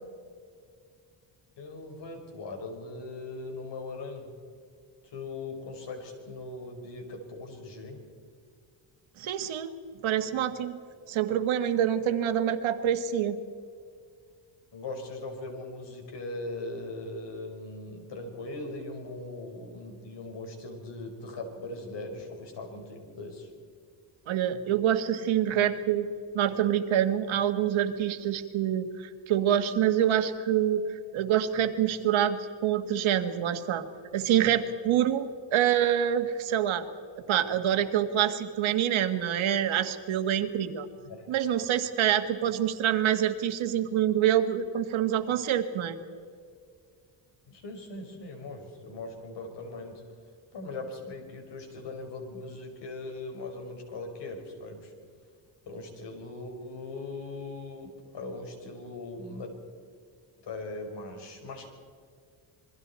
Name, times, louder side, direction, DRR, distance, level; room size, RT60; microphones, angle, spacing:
voice 1, 1.6-4.3 5.0-8.0 14.7-23.5 41.0-41.3 47.5-50.0 50.5-54.9 55.7-59.5 60.4-61.7, left 2 dB, 60° left, 3 dB, 4.8 m, -40 dB
voice 2, 9.2-9.7 10.0-10.8 11.1-13.4 24.3-26.1 26.3-33.9 34.1-36.9 37.3-40.9 41.3-46.0, right 10 dB, 80° right, 8 dB, 1.7 m, -26 dB
28.0 x 22.0 x 4.3 m, 2.2 s
cardioid pair, 170°, 47 cm